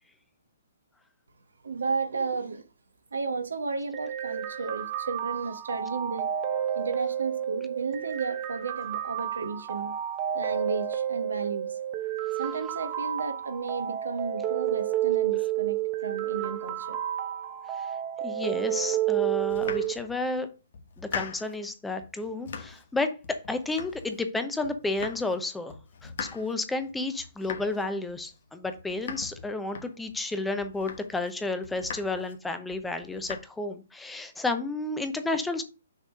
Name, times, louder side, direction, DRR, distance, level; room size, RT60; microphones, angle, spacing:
voice 1, 1.6-2.6 3.1-6.3 6.7-9.9 10.3-11.8 12.4-17.0, right 4 dB, 75° right, 1.1 m, -33 dB
sound 1, 3.9-19.9, right 11 dB, 30° right, 1.0 m, -30 dB
voice 2, 18.2-20.5 21.0-25.7 26.0-35.6, left 2 dB, 5° left, 0.8 m, -31 dB
Domestic sounds home sounds, 19.4-20.4 20.7-21.6 22.0-22.9 23.2-24.3 24.6-25.4 25.7-30.2 30.6-31.3 31.6-32.4 32.7-33.4, left 6 dB, 55° left, 1.1 m, -41 dB
6.4 x 3.5 x 5.4 m
figure-of-eight pair, 130°, 0 cm